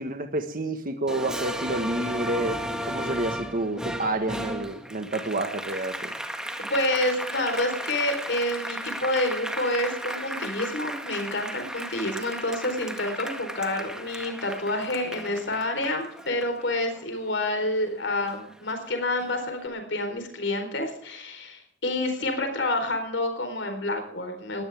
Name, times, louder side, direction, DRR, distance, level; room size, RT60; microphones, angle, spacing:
voice 1, 0.0-6.1, right 2 dB, 50° right, 6 dB, 1.6 m, -29 dB
Applause, 1.1-17.9 18.3-19.5, equal, 5° right, 1.8 m, -35 dB
voice 2, 6.7-24.6, left 1 dB, 70° left, 6 dB, 4.2 m, -28 dB
21.5 x 16.5 x 3.6 m, 0.64 s
head